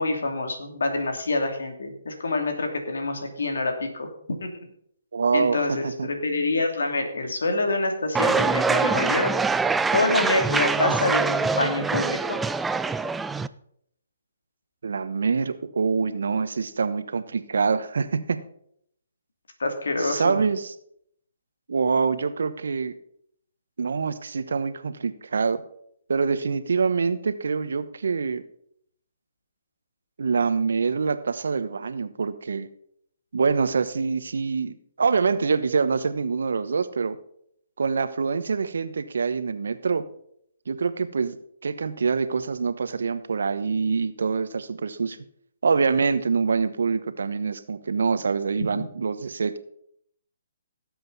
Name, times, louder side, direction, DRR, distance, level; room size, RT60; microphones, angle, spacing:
voice 1, 0.0-4.1 4.4-4.6 5.3-9.3 9.9-12.4 19.6-20.4 48.8-48.9, left 2 dB, 75° left, 4 dB, 2.7 m, -26 dB
voice 2, 5.1-6.1 14.8-18.4 20.0-20.7 21.7-22.9 23.8-25.6 26.1-28.4 30.2-32.7 33.3-37.2 37.8-40.0 40.7-41.4 41.6-45.2 45.6-49.6, right 5 dB, 70° right, 12 dB, 1.0 m, -25 dB
sound 1, 8.1-13.5, right 4 dB, 5° right, 0.4 m, -24 dB
17.5 x 7.8 x 4.1 m, 0.69 s
figure-of-eight pair, 135°, 0 cm